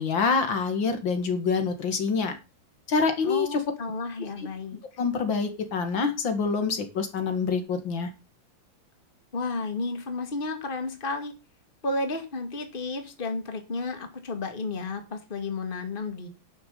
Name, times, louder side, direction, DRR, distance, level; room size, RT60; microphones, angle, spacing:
voice 1, 0.0-2.4 2.9-3.6 4.4-4.5 5.0-8.1, left 5 dB, 75° left, 8 dB, 2.6 m, -26 dB
voice 2, 3.2-4.8 9.3-11.3 11.8-16.3, left 3 dB, 25° left, 7 dB, 2.1 m, -32 dB
11.0 x 7.0 x 6.9 m, 0.29 s
omnidirectional pair, 2.1 m